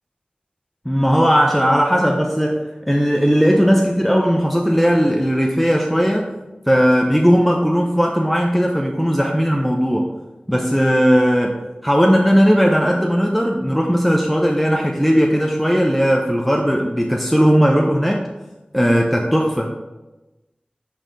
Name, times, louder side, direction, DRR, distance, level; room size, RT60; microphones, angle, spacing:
voice 1, 0.9-6.4 6.7-10.1 10.5-11.6 11.8-18.3 18.7-19.8, equal, ahead, 0 dB, 0.7 m, -17 dB
6.5 x 4.2 x 5.2 m, 1.1 s
wide cardioid pair, 50°, 3 cm